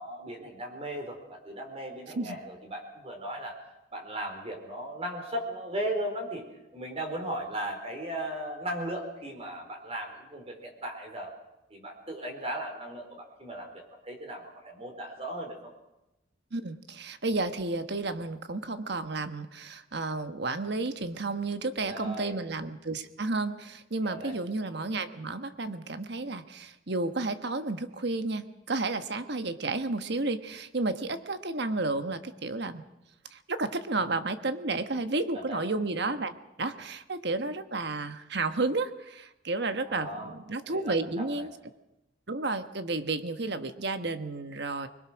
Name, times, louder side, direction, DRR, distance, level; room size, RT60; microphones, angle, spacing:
voice 1, 0.0-3.6 3.9-6.4 6.7-11.3 11.7-15.6 21.8-22.4 24.0-24.4 35.3-35.6 39.8-40.3 40.6-41.5, right 1 dB, 35° right, 3 dB, 4.3 m, -37 dB
voice 2, 16.5-32.8 33.3-41.5 42.3-44.9, right 3 dB, 60° right, 9 dB, 1.3 m, -32 dB
24.5 x 21.5 x 6.3 m, 0.93 s
head